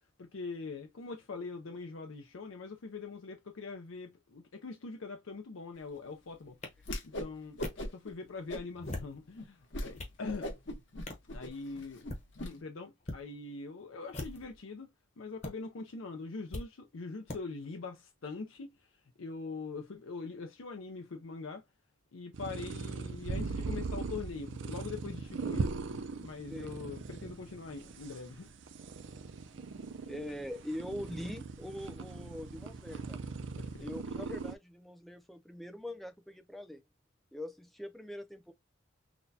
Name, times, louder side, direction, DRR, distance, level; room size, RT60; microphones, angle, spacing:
voice 1, 0.2-6.6 7.0-10.5 11.3-12.0 12.4-14.9 15.2-18.7 19.2-21.6 22.1-25.7 26.2-28.5 33.6-33.9, left 4 dB, 85° left, 0.6 m, -43 dB
sound 1, 6.6-6.7 7.6-7.7 8.7-9.2 9.7-10.2 11.1-11.3 11.9-12.2 13.0-13.2 14.1-14.6 15.4-15.5 16.5-16.7 17.3-17.4, left 1 dB, 35° left, 0.9 m, -41 dB
Whoosh swoosh swish, 6.8-7.3 7.6-8.1 8.5-9.0 9.4-9.5 9.7-9.9 10.2-12.5, left 1 dB, 65° left, 1.0 m, -39 dB
sound 2, 22.3-34.5, right 4 dB, 70° right, 0.5 m, -40 dB
voice 2, 30.1-33.2 33.8-36.8 37.3-38.5, left 1 dB, ahead, 0.4 m, -43 dB
6.0 x 2.2 x 2.7 m
head